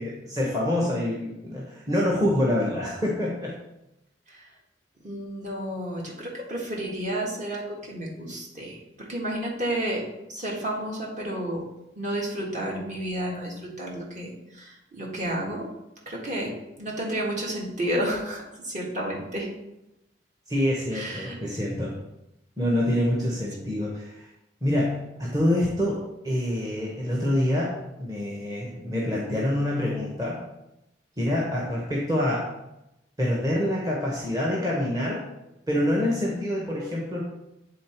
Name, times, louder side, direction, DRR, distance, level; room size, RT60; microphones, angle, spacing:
voice 1, 0.0-3.5 20.5-22.0 22.6-24.3 24.6-30.4 31.2-32.5 33.2-35.3 35.7-37.2, left 1 dB, 20° right, -4 dB, 1.0 m, -26 dB
voice 2, 5.0-10.0 10.3-11.6 12.0-15.7 16.1-19.5 20.9-21.4, right 1 dB, 40° right, -2 dB, 1.6 m, -31 dB
8.6 x 3.8 x 4.4 m, 0.91 s
head